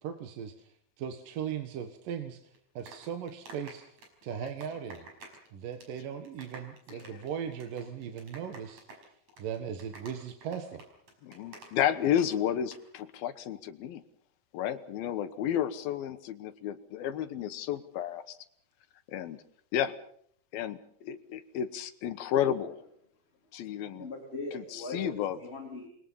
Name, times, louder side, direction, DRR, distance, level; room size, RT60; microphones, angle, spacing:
voice 1, 0.0-0.7 1.0-2.5 2.7-5.1 5.5-8.8 9.4-10.8, right 8 dB, 70° right, 6 dB, 3.0 m, -38 dB
sound 1, 2.5-5.5 5.7-6.0 6.3-12.3 12.5-12.8, right 3 dB, 45° right, 6.5 m, -49 dB
voice 2, 6.9-7.2 11.2-14.0 14.5-18.4 19.1-19.4 19.7-19.9 20.5-22.8 23.5-24.1 24.5-25.4, left 10 dB, 80° left, 10 dB, 3.0 m, -32 dB
voice 3, 24.0-25.9, left 2 dB, 15° left, 0 dB, 3.9 m, -40 dB
29.0 x 22.0 x 5.7 m, 0.64 s
omnidirectional pair, 4.2 m